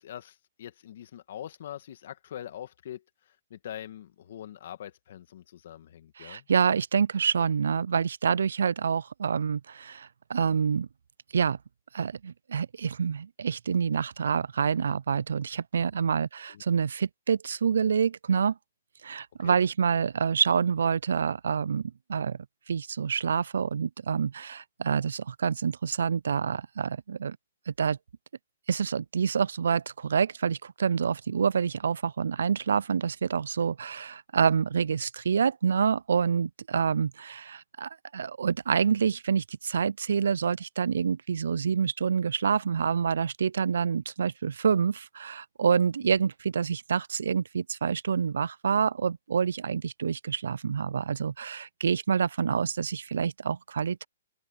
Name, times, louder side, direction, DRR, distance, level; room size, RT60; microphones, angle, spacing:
voice 1, 0.0-6.4 16.5-16.6 19.4-19.6 46.0-46.3, left 11 dB, 60° left, 2.2 m, -43 dB
voice 2, 6.2-10.9 11.3-11.6 11.9-18.6 19.0-27.4 27.7-28.0 28.7-54.1, right 6 dB, 80° right, 0.3 m, -27 dB
open air
hypercardioid pair, 145°, 0 cm